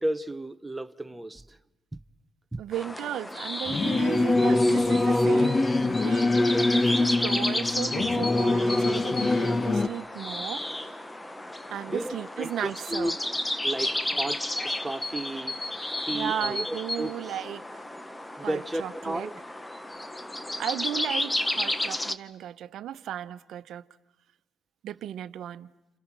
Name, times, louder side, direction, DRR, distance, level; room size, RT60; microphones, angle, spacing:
voice 1, 0.0-1.6 2.5-2.6 6.5-6.7 11.9-13.1 13.6-15.6 16.0-17.1 18.4-19.4, right 1 dB, 10° right, 0.9 m, -33 dB
voice 2, 2.6-5.6 6.0-6.4 6.7-11.0 11.7-13.1 16.1-17.7 18.4-19.3 20.6-23.8 24.8-25.7, right 11 dB, 75° right, 1.0 m, -35 dB
sound 1, 2.7-22.2, left 1 dB, 15° left, 1.1 m, -33 dB
Singing / Musical instrument, 3.7-9.9, left 2 dB, 30° left, 1.1 m, -23 dB
30.0 x 29.5 x 6.1 m
cardioid pair, 90°, 0 cm